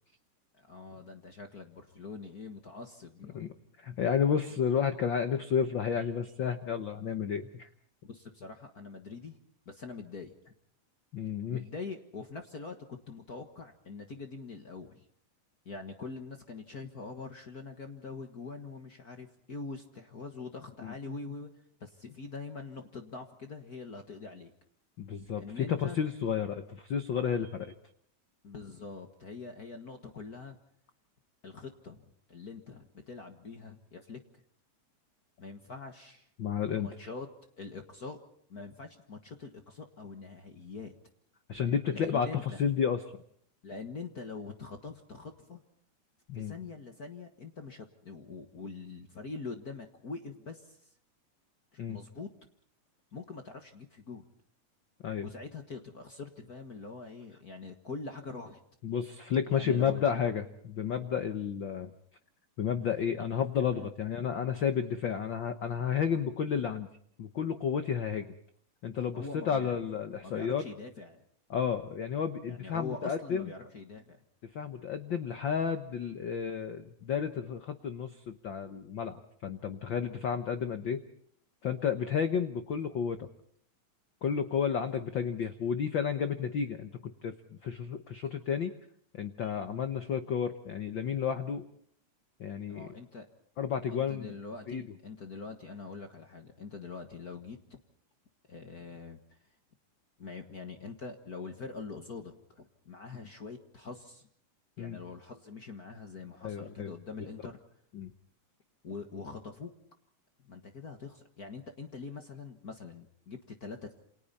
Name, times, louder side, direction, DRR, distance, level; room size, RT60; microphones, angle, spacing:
voice 1, 0.5-3.5 8.0-9.4 9.6-10.5 11.5-15.0 15.6-21.5 21.8-24.5 25.4-26.0 28.4-30.6 31.4-34.2 35.4-36.3 36.7-37.3 37.6-38.2 38.5-40.9 41.9-42.6 43.6-45.6 46.3-50.8 51.7-52.3 53.1-54.2 55.2-58.6 59.5-60.0 63.7-63.9 69.1-69.7 70.2-71.2 72.5-74.2 92.7-93.3 93.9-97.8 98.5-99.2 100.2-104.2 104.8-107.6 108.8-109.7 110.4-114.0, left 4 dB, 45° left, 5 dB, 1.3 m, -44 dB
voice 2, 3.8-7.7 11.1-11.6 20.8-20.9 25.0-27.7 36.4-37.1 41.5-43.0 46.3-46.5 51.8-52.0 55.0-55.3 58.8-61.9 62.6-66.9 67.2-68.3 68.8-70.6 71.5-73.5 74.5-81.0 81.6-83.3 84.2-87.3 87.6-88.7 89.1-91.6 92.4-92.9 93.6-94.3 94.7-94.8 104.8-105.0 106.4-106.9 107.9-108.1, left 7 dB, 75° left, 8 dB, 1.0 m, -31 dB
28.5 x 27.5 x 4.2 m, 0.64 s
omnidirectional pair, 3.8 m